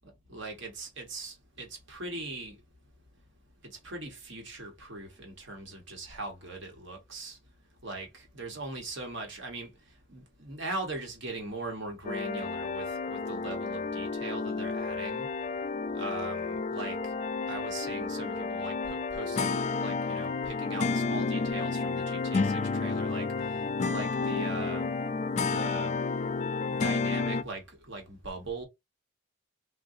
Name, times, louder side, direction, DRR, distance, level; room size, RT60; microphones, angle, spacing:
voice 1, 0.3-2.5 3.8-7.4 7.8-8.1 8.3-9.7 10.1-15.3 15.9-16.9 17.5-23.2 23.9-24.8 25.4-25.9 26.7-28.6, right 2 dB, 65° right, 1.3 m, -40 dB
sound 1, 12.0-27.4, left 4 dB, 35° left, 0.3 m, -31 dB
3.7 x 2.5 x 2.6 m
head